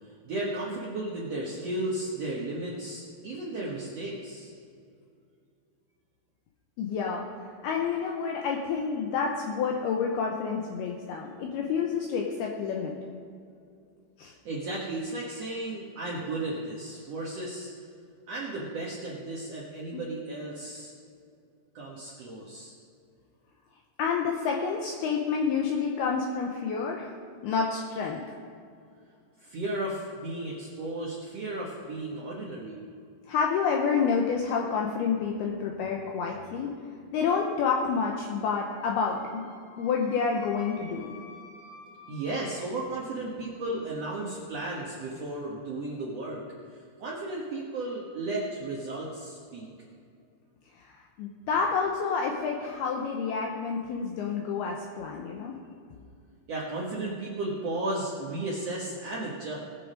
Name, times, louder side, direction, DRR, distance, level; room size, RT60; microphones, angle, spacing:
voice 1, 0.0-4.5 14.4-17.7 18.3-20.9 21.7-22.7 29.4-32.8 42.1-46.4 46.7-49.7 56.5-59.6, right 2 dB, 80° right, -4 dB, 1.4 m, -34 dB
voice 2, 6.8-7.2 7.6-12.9 14.2-14.3 19.9-20.0 24.0-27.1 27.4-28.2 33.3-36.7 37.1-39.5 39.8-41.1 50.8-55.6, left 5 dB, 75° left, 0 dB, 2.5 m, -29 dB
Wind instrument woodwind instrument, 38.5-42.7, left 3 dB, 60° left, 2.8 m, -50 dB
20.0 x 6.7 x 5.1 m, 2.4 s
omnidirectional pair, 5.2 m